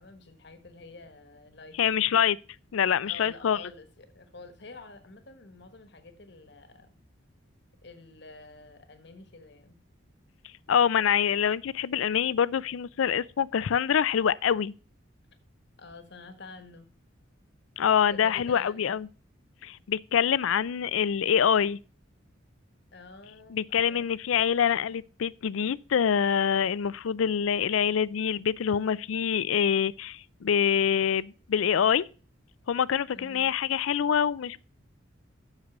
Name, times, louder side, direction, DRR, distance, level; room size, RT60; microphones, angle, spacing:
voice 1, 0.0-2.1 3.0-7.0 7.8-9.8 15.8-16.9 18.1-19.0 22.9-24.0 33.1-33.5, left 3 dB, 60° left, 1.3 m, -48 dB
voice 2, 1.8-2.4 2.7-3.6 10.7-14.7 17.8-19.1 19.6-21.8 23.5-32.1 32.7-34.6, left 8 dB, 85° left, 0.4 m, -25 dB
8.1 x 6.7 x 6.0 m
head